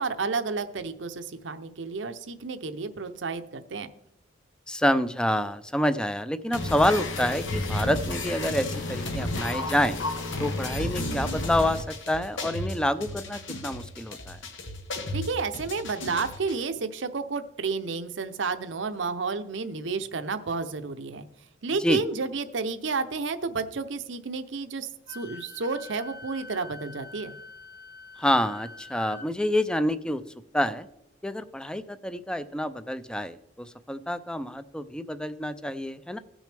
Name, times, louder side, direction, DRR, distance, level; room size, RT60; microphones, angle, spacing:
voice 1, 0.0-3.9 15.1-21.3 21.6-27.3, right 4 dB, 70° right, 9 dB, 0.7 m, -31 dB
voice 2, 4.7-10.0 10.4-14.4 21.8-22.0 28.2-30.2 30.5-30.9 31.2-36.2, left 1 dB, 5° left, 12 dB, 0.4 m, -27 dB
sound 1, 6.5-16.5, left 2 dB, 80° left, 1.2 m, -32 dB
Wind instrument woodwind instrument, 25.1-29.3, left 3 dB, 50° left, 2.1 m, -45 dB
17.0 x 6.2 x 3.4 m, 0.79 s
head